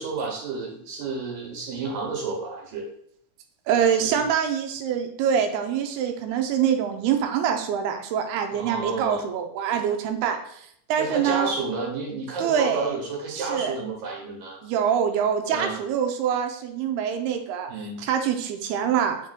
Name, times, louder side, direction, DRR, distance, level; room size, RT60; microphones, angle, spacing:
voice 1, 0.0-2.8 3.9-4.3 8.5-9.3 10.9-14.6 15.5-15.8 17.7-18.0, right 4 dB, 65° right, -1 dB, 3.2 m, -31 dB
voice 2, 3.7-11.5 12.4-12.9 13.3-13.8 14.6-17.7 18.0-19.3, right 8 dB, 85° right, 5 dB, 2.6 m, -25 dB
7.3 x 5.9 x 2.2 m, 0.68 s
omnidirectional pair, 4.5 m